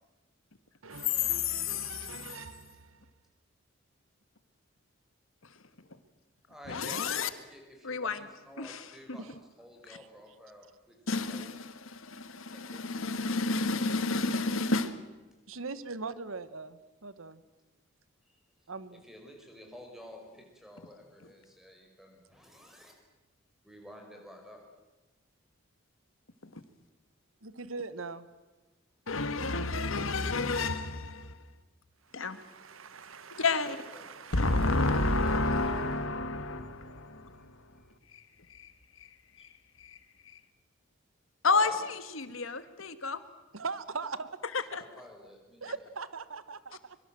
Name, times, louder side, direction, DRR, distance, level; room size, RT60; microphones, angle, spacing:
voice 1, 0.8-3.0 9.2-9.3 9.9-10.1 15.5-17.4 18.7-19.0 27.4-28.3 32.0-35.9 43.5-44.3 45.6-47.0, right 4 dB, 85° right, 14 dB, 1.3 m, -42 dB
voice 2, 1.3-2.1 6.7-7.3 7.8-8.2 8.6-9.2 9.9-10.0 11.1-15.0 26.5-26.6 29.1-31.3 32.1-32.4 33.4-33.8 34.3-37.7 38.1-38.2 38.5-38.7 39.0-39.1 39.4-39.5 39.8-40.0 40.2-40.4 41.4-43.2 44.7-44.8, left 3 dB, 85° left, 11 dB, 1.6 m, -31 dB
voice 3, 6.5-9.3 9.6-11.0 11.3-11.6 12.5-12.8 18.2-18.7 19.0-22.9 23.6-24.6 33.6-34.1 37.8-37.9 39.4-39.5 41.5-41.8 44.7-45.9, left 1 dB, ahead, 2 dB, 5.2 m, -51 dB
24.5 x 23.5 x 7.7 m, 1.2 s
head